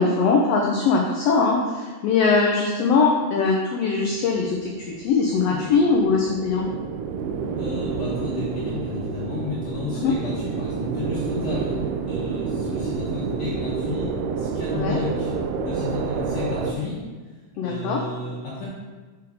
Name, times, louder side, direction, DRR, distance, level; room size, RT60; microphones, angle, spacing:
voice 1, 0.0-6.7 10.0-10.1 14.7-15.0 17.6-18.0, left 4 dB, 85° left, -1 dB, 1.4 m, -21 dB
sound 1, 4.0-16.7, right 5 dB, 85° right, 2.1 m, -29 dB
voice 2, 7.6-11.8 12.0-14.1 14.4-15.3 15.6-17.0 17.6-18.7, left 3 dB, 65° left, -8 dB, 2.1 m, -32 dB
6.3 x 4.6 x 3.5 m, 1.4 s
omnidirectional pair, 3.6 m